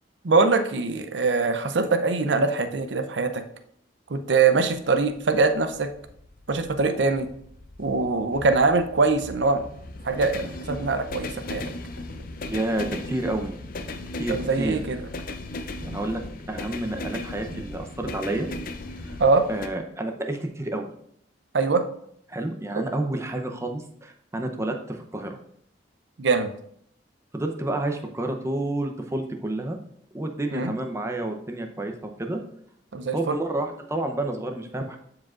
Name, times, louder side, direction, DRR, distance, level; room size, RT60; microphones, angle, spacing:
voice 1, 0.2-3.4 4.1-5.9 6.5-7.3 7.8-9.6 10.0-11.6 14.3-15.0 15.8-16.0 19.2-19.4 21.5-21.8 26.2-26.5 30.5-30.7 32.9-33.4, right 4 dB, 80° right, 9 dB, 0.6 m, -23 dB
sound 1, 5.2-19.7, left 2 dB, 50° left, 0.5 m, -37 dB
voice 2, 12.5-13.5 14.2-14.8 15.9-16.2 16.5-18.5 19.0-19.2 19.5-20.9 22.3-25.4 27.3-29.8 30.1-32.4 33.1-35.0, right 1 dB, 15° right, 4 dB, 0.7 m, -29 dB
12.0 x 4.8 x 2.5 m, 0.69 s
head